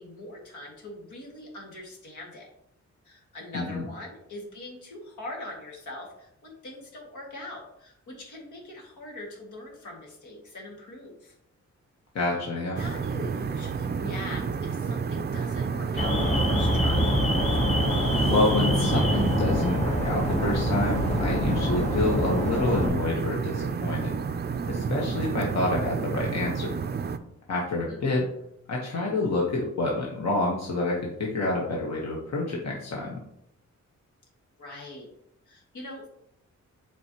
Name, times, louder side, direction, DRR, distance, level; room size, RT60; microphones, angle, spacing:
voice 1, 0.0-2.5 3.0-11.4 12.8-17.0 27.9-28.4 34.6-35.1 35.5-36.1, left 1 dB, 80° left, -1 dB, 2.0 m, -42 dB
voice 2, 12.1-12.8 18.3-24.2 24.6-26.8 27.5-28.3 28.7-33.2, left 2 dB, 60° left, -2 dB, 1.2 m, -28 dB
sound 1, 12.8-27.2, right 5 dB, 35° right, 0.4 m, -30 dB
Alarm, 16.0-22.9, equal, 25° left, 1.1 m, -25 dB
7.6 x 4.6 x 2.9 m, 0.76 s
wide cardioid pair, 115°, 29 cm